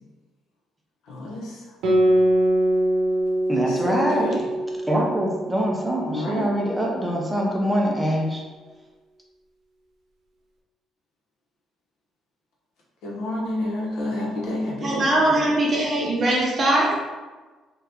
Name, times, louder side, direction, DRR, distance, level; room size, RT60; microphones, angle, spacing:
voice 1, 1.0-1.6 3.7-4.5 6.1-6.6 13.0-15.3, left 1 dB, 85° left, -4 dB, 0.9 m, -29 dB
Guitar, 1.8-6.8, right 1 dB, 85° right, 0.6 m, -23 dB
voice 2, 3.5-4.3 4.9-8.4, equal, 5° right, -1 dB, 0.4 m, -24 dB
voice 3, 14.8-17.0, right 1 dB, 35° right, -4 dB, 0.8 m, -21 dB
2.8 x 2.3 x 3.4 m, 1.3 s
cardioid pair, 155°, 0 cm